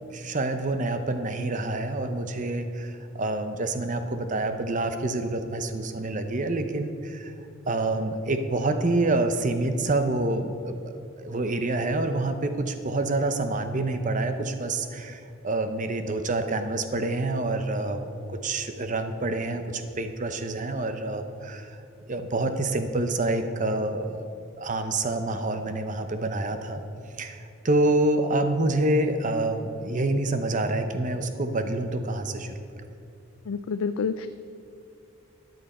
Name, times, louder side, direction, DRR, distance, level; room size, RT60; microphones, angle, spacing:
voice 1, 0.1-7.3 7.7-21.8 22.1-24.3 24.6-26.8 27.2-32.5, right 2 dB, 40° right, 8 dB, 0.8 m, -27 dB
voice 2, 33.5-34.3, left 5 dB, 90° left, 10 dB, 0.4 m, -28 dB
13.5 x 9.5 x 4.3 m, 2.5 s
head